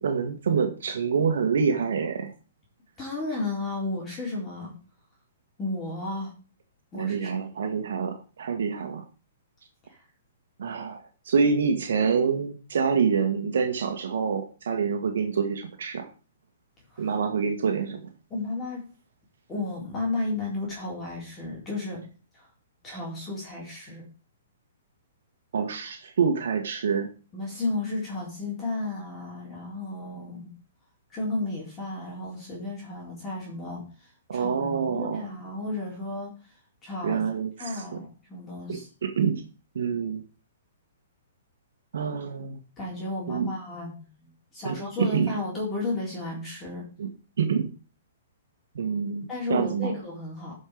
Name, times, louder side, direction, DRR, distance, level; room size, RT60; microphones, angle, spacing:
voice 1, 0.0-2.3 7.0-9.0 10.6-11.0 11.2-16.1 17.0-18.0 25.5-27.1 34.3-35.3 37.0-38.0 38.7-39.4 39.7-40.2 41.9-42.6 43.3-43.5 44.6-45.3 47.0-47.1 47.4-47.7 48.7-50.0, right 6 dB, 70° right, 4 dB, 1.6 m, -26 dB
voice 2, 3.0-4.7 5.6-6.3 6.9-7.4 9.9-10.0 16.9-17.1 18.3-18.8 19.5-22.0 22.3-22.5 22.8-24.1 27.3-30.5 31.1-36.3 36.8-37.2 37.6-38.9 42.8-46.8 49.3-50.5, left 2 dB, 15° left, -3 dB, 4.0 m, -33 dB
12.5 x 5.6 x 5.1 m, 0.35 s
hypercardioid pair, 160°, 0 cm